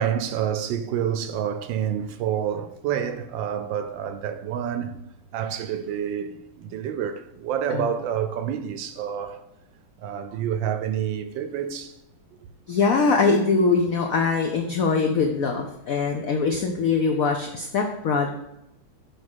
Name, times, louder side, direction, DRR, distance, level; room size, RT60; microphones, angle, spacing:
voice 1, 0.0-4.9 5.3-9.4 10.0-12.0, right 9 dB, 75° right, 1.2 m, -28 dB
voice 2, 12.7-18.3, left 4 dB, 75° left, 0.7 m, -22 dB
6.5 x 3.6 x 6.1 m
omnidirectional pair, 2.3 m